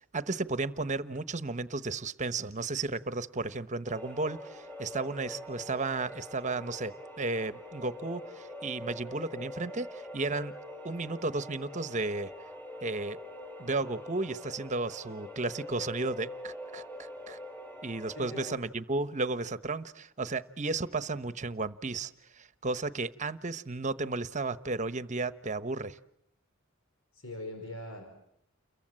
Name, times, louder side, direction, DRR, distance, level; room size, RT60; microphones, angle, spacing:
voice 1, 0.1-10.5 10.8-12.3 12.8-13.2 13.6-17.4 17.8-22.1 22.4-26.0, right 3 dB, 35° right, 13 dB, 1.1 m, -34 dB
sound 1, 3.8-18.6, left 1 dB, 10° left, 5.3 m, -44 dB
voice 2, 18.2-18.5 27.1-28.0, left 1 dB, 75° left, 4 dB, 5.3 m, -41 dB
30.0 x 22.5 x 7.8 m, 0.74 s
head